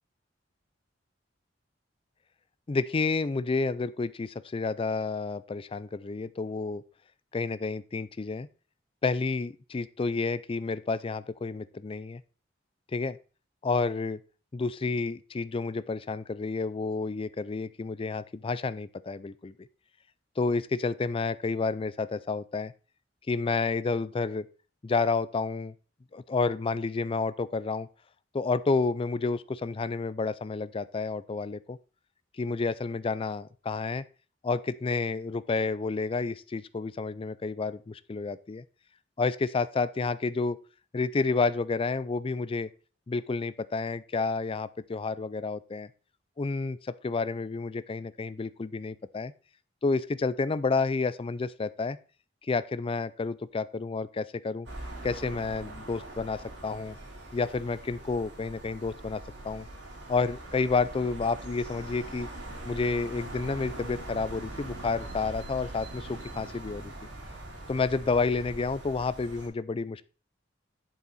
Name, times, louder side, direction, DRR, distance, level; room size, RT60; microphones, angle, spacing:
voice 1, 2.7-6.8 7.3-8.5 9.0-12.2 12.9-13.2 13.6-14.2 14.5-19.5 20.4-22.7 23.3-24.5 24.8-25.7 26.1-27.9 28.3-31.8 32.4-34.0 34.4-38.6 39.2-40.6 40.9-42.7 43.1-45.9 46.4-49.3 49.8-52.0 52.5-54.7 55.0-57.0 57.3-59.7 60.1-62.3 62.6-66.9 67.7-70.1, left 4 dB, 30° left, 16 dB, 0.4 m, -30 dB
sound 1, 54.7-69.5, right 1 dB, 65° right, 3.3 m, -42 dB
8.2 x 7.1 x 4.0 m, 0.36 s
head